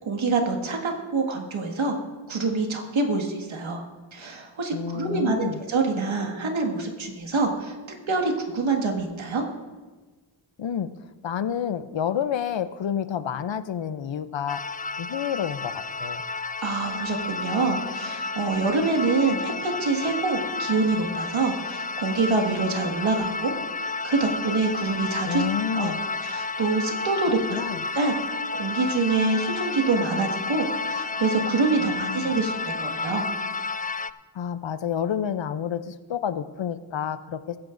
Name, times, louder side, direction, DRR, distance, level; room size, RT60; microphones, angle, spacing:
voice 1, 0.0-2.0 2.3-3.8 4.1-7.7 8.1-9.4 16.6-23.5 23.8-25.4 25.7-25.9 26.2-27.6 27.9-28.1 28.6-33.2, right 3 dB, 85° right, 2 dB, 2.0 m, -26 dB
voice 2, 4.7-5.6 10.6-10.9 11.2-14.6 15.0-16.2 25.3-26.0 27.5-27.8 31.8-32.3 34.3-37.6, left 8 dB, 70° left, 13 dB, 0.7 m, -29 dB
sound 1, 14.5-34.1, left 4 dB, 20° left, 0.3 m, -31 dB
21.0 x 10.5 x 2.6 m, 1.3 s
cardioid pair, 65°, 46 cm